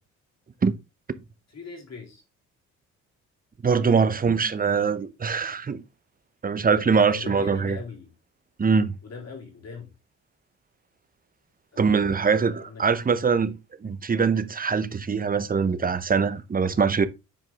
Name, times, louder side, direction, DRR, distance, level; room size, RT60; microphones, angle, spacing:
voice 1, 1.5-2.2 3.9-4.3 6.7-8.1 9.0-9.9 11.7-12.8, left 5 dB, 50° left, 4.0 m, -41 dB
voice 2, 3.6-5.8 6.4-7.8 8.6-8.9 11.8-17.1, right 5 dB, 25° right, 0.8 m, -23 dB
7.9 x 4.8 x 3.4 m
supercardioid pair, 65°, 35 cm